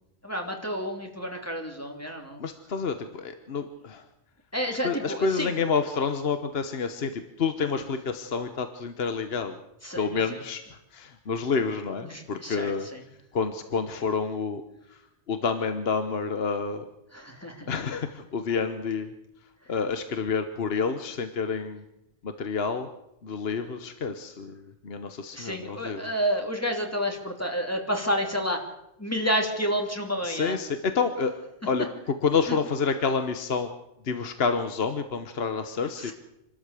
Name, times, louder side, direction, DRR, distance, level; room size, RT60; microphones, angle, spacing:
voice 1, 0.2-2.4 4.5-5.6 9.8-10.4 12.0-13.0 17.1-17.7 19.6-19.7 25.3-28.6 29.0-30.6 32.5-32.6 36.0-36.1, equal, 15° left, 2 dB, 2.9 m, -30 dB
voice 2, 2.4-4.0 4.8-9.6 10.0-10.6 10.9-12.9 13.3-14.6 15.3-16.8 17.7-19.1 19.7-21.8 22.2-22.9 23.2-26.1 30.2-31.3 31.7-31.9 32.2-33.7 34.0-36.1, left 5 dB, 65° left, 8 dB, 1.3 m, -28 dB
26.5 x 13.0 x 8.3 m, 0.87 s
omnidirectional pair, 1.1 m